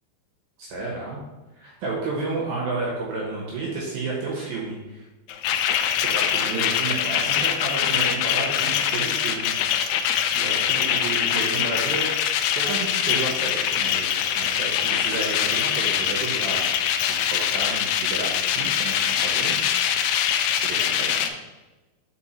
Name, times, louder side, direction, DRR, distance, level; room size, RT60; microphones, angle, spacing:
voice 1, 0.6-1.2 1.6-5.1 6.1-9.5 10.3-12.0 12.6-16.9 17.3-19.6 20.5-21.3, right 3 dB, 70° right, -3 dB, 2.5 m, -31 dB
sound 1, 5.3-21.3, left 9 dB, 90° left, 2.3 m, -23 dB
6.3 x 4.7 x 4.3 m, 1.1 s
omnidirectional pair, 5.2 m